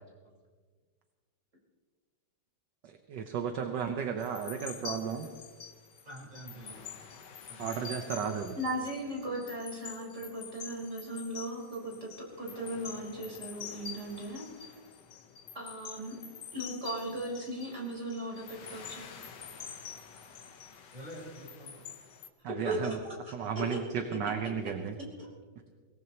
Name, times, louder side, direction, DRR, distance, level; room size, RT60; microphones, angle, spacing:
voice 1, 2.8-5.3 7.6-8.6 22.4-23.0 23.3-25.0, right 7 dB, 65° right, 5 dB, 1.5 m, -34 dB
sound 1, 4.2-22.3, left 7 dB, 65° left, 1.7 m, -47 dB
voice 2, 4.4-5.3 6.0-6.8 7.5-8.5 20.9-21.8, equal, 20° right, -3 dB, 4.6 m, -48 dB
voice 3, 8.6-12.1 12.4-14.7 15.5-19.1 22.6-22.9 23.2-23.3 23.7-23.8 25.2-25.3, right 1 dB, 35° right, -3 dB, 5.1 m, -37 dB
24.5 x 17.5 x 3.0 m, 1.5 s
omnidirectional pair, 2.1 m